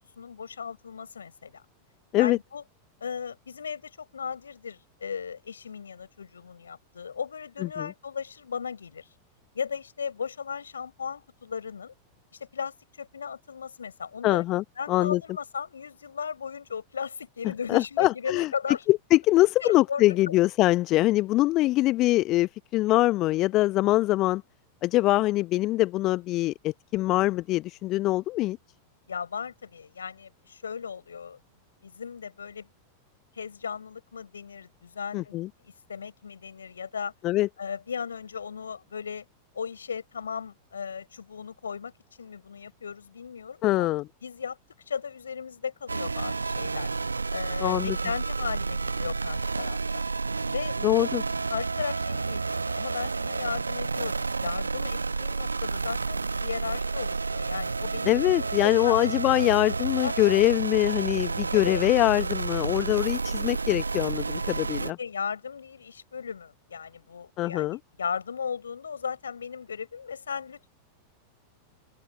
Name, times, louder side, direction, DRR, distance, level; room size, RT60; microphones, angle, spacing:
voice 1, 0.2-1.6 2.2-2.6 3.0-9.1 9.5-11.9 12.4-14.5 14.7-18.8 19.6-20.4 29.1-31.4 31.8-32.7 33.3-35.4 35.6-37.1 37.6-39.2 39.5-41.9 42.2-43.9 44.2-44.6 44.9-46.9 47.3-50.0 50.5-50.8 51.5-59.0 60.0-60.2 61.5-61.8 64.8-70.7, left 6 dB, 70° left, 6.8 m, -36 dB
voice 2, 14.2-15.2 17.7-18.5 18.9-24.4 24.8-28.6 35.1-35.5 37.2-37.5 43.6-44.1 47.6-48.0 50.8-51.2 58.1-65.0 67.4-67.8, left 17 dB, 35° left, 0.9 m, -23 dB
sound 1, 45.9-64.9, right 4 dB, 80° right, 1.3 m, -30 dB
open air
figure-of-eight pair, 90°, 0 cm